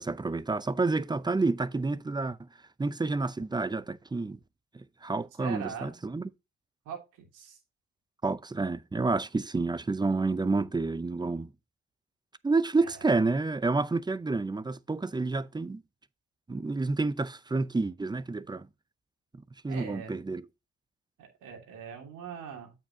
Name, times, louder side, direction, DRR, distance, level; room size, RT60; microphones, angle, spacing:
voice 1, 0.0-2.4 2.8-4.4 4.7-6.3 8.2-11.5 12.4-15.8 16.5-18.7 19.6-20.4, right 3 dB, 15° right, 0.6 m, -29 dB
voice 2, 5.4-6.0 6.8-7.6 12.8-13.0 19.7-20.2 21.2-22.7, right 7 dB, 90° right, 3.0 m, -41 dB
8.6 x 7.4 x 2.8 m
cardioid pair, 90°, 30 cm